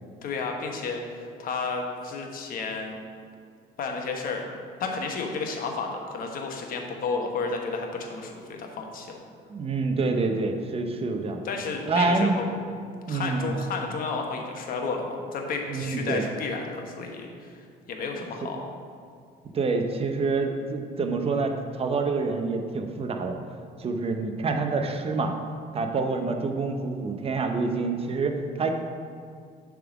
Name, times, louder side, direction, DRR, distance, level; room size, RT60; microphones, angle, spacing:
voice 1, 0.2-3.0 3.8-4.4 4.8-9.2 11.4-12.6 13.1-18.7, left 4 dB, 55° left, 2 dB, 1.0 m, -32 dB
voice 2, 9.5-11.4 11.9-12.3 13.1-13.5 15.7-16.3 18.2-18.5 19.5-23.4 23.8-25.3 25.7-28.7, right 3 dB, 35° right, 5 dB, 0.7 m, -27 dB
7.3 x 3.7 x 6.0 m, 2.2 s
cardioid pair, 110°, 17 cm